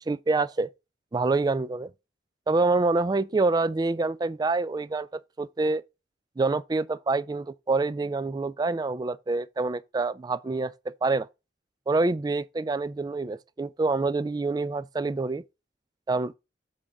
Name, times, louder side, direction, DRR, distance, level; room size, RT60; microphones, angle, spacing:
voice 1, 0.1-0.7 1.1-1.9 2.5-5.8 6.4-10.7 11.0-11.3 11.9-15.4 16.1-16.4, right 3 dB, 20° right, 0.3 m, -26 dB
7.4 x 3.7 x 4.7 m
head